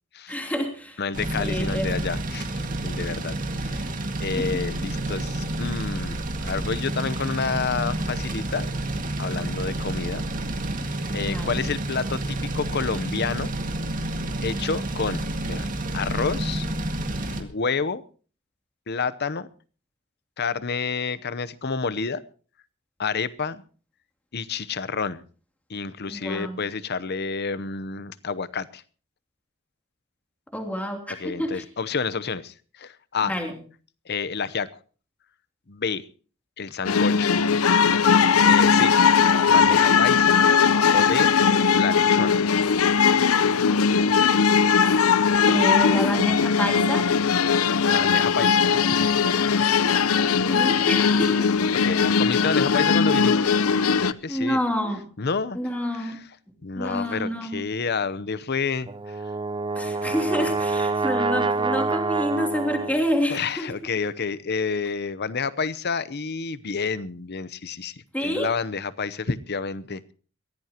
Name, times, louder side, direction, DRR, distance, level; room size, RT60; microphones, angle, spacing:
voice 1, 0.3-1.0 1.4-1.9 4.4-4.5 11.1-11.6 26.1-26.6 30.5-31.6 33.2-33.5 45.5-47.1 50.5-51.5 54.3-55.0 55.5-56.2 56.7-57.6 59.7-63.7 68.1-68.5, equal, 5° left, 2 dB, 3.0 m, -28 dB
voice 2, 1.0-3.3 3.6-3.9 4.2-8.7 9.2-10.2 10.8-13.5 14.4-15.7 15.9-16.7 17.4-18.0 18.9-19.5 20.4-22.2 23.0-23.6 24.3-25.2 25.7-28.8 31.2-33.3 34.1-34.7 35.7-36.0 36.6-37.3 38.4-39.0 39.5-40.4 40.9-41.3 41.7-42.4 47.9-48.8 51.7-53.6 53.9-54.6 55.2-55.6 55.9-56.2 56.6-59.2 63.3-70.1, left 5 dB, 50° left, 17 dB, 0.8 m, -29 dB
sound 1, 1.1-17.4, right 1 dB, 40° right, 2.0 m, -29 dB
sound 2, 36.8-54.1, left 6 dB, 80° left, 0.7 m, -19 dB
Brass instrument, 58.9-63.1, right 4 dB, 20° right, 0.7 m, -26 dB
22.5 x 16.0 x 2.9 m, 0.38 s
head